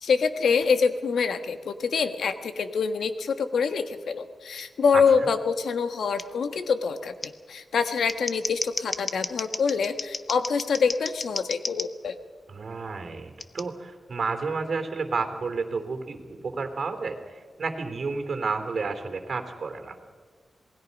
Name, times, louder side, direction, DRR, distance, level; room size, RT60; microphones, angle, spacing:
voice 1, 0.0-12.1, left 5 dB, 80° left, 9 dB, 1.4 m, -25 dB
voice 2, 4.9-5.3 12.5-20.0, right 4 dB, 55° right, 6 dB, 3.1 m, -31 dB
Scissors, 6.2-6.3 7.2-7.3 7.9-11.9 13.4-13.6, left 3 dB, 30° left, 0.9 m, -33 dB
27.5 x 20.0 x 5.4 m, 1.5 s
wide cardioid pair, 105°, 0 cm